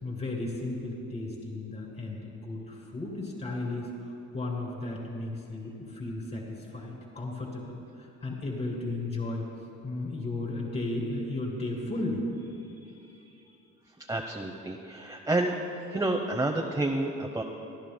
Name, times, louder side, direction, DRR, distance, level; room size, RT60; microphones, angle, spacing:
voice 1, 0.0-7.8 8.2-9.4 9.8-12.2, left 2 dB, 35° left, -4 dB, 2.8 m, -34 dB
voice 2, 14.0-15.6 15.9-17.4, right 2 dB, 10° right, 1 dB, 0.8 m, -29 dB
26.5 x 11.5 x 2.2 m, 2.7 s
cardioid pair, 90°, 30 cm